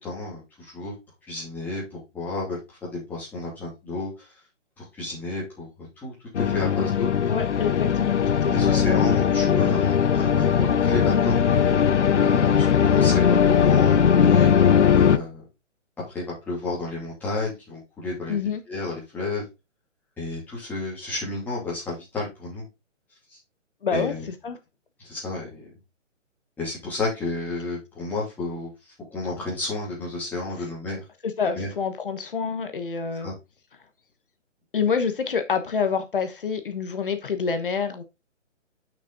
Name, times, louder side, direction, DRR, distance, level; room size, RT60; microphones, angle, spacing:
voice 1, 0.0-0.9 1.3-4.3 4.8-5.7 6.0-7.1 8.4-11.4 12.2-14.5 14.9-15.4 16.1-18.4 18.7-19.4 20.2-22.6 23.9-24.3 25.0-25.7 26.6-28.7 29.1-31.0 31.5-31.7 33.2-33.3, left 2 dB, 5° left, 2.6 m, -31 dB
sound 1, 6.3-15.2, left 7 dB, 65° left, 0.9 m, -19 dB
voice 2, 7.3-9.1 18.3-18.6 23.8-24.1 24.4-24.6 31.2-33.3 34.7-38.0, left 6 dB, 45° left, 1.1 m, -27 dB
6.8 x 6.0 x 3.9 m
hypercardioid pair, 170°, 38 cm